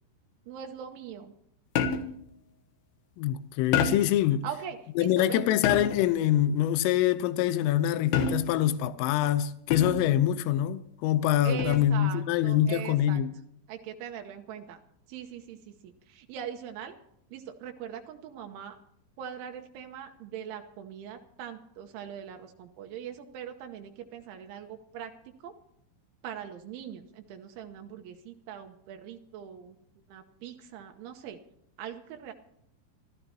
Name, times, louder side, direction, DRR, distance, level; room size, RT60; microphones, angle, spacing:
voice 1, 0.5-1.3 4.4-5.5 11.4-13.2 13.7-14.8 15.1-16.9 17.3-18.8 19.2-25.1 25.4-25.5 26.2-29.8 30.1-31.4 31.8-32.3, right 9 dB, 80° right, 3.3 m, -41 dB
sound 1, 1.8-2.3 3.7-4.2 5.6-6.1 8.1-8.7 9.7-10.2 11.6-12.0, left 6 dB, 70° left, 2.6 m, -29 dB
voice 2, 3.2-4.5 5.0-13.3, left 11 dB, 90° left, 3.4 m, -25 dB
27.0 x 14.0 x 2.9 m
omnidirectional pair, 5.7 m